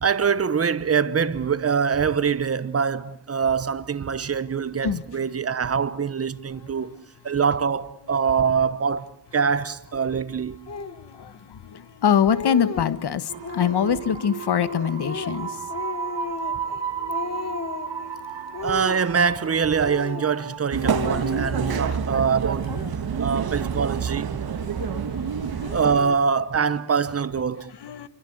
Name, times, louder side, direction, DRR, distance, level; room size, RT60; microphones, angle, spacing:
voice 1, 0.0-7.0 7.2-10.6 18.6-22.8 23.2-24.4 25.7-27.7, right 6 dB, 35° right, 1.1 m, -24 dB
voice 2, 6.6-7.0 10.7-15.6 22.8-23.2 24.6-26.1 27.8-28.1, left 8 dB, 70° left, 1.5 m, -25 dB
Speech, 10.7-11.0 11.7-11.8 12.1-13.0 13.4-14.0 14.5-16.8 17.1-18.0 18.5-19.5 19.8-20.5 20.8-22.0, left 5 dB, 35° left, 1.2 m, -35 dB
sound 1, 13.3-20.6, right 6 dB, 80° right, 2.0 m, -33 dB
sound 2, 20.7-26.0, right 7 dB, 60° right, 1.6 m, -27 dB
28.0 x 24.0 x 7.9 m
wide cardioid pair, 180°, 42 cm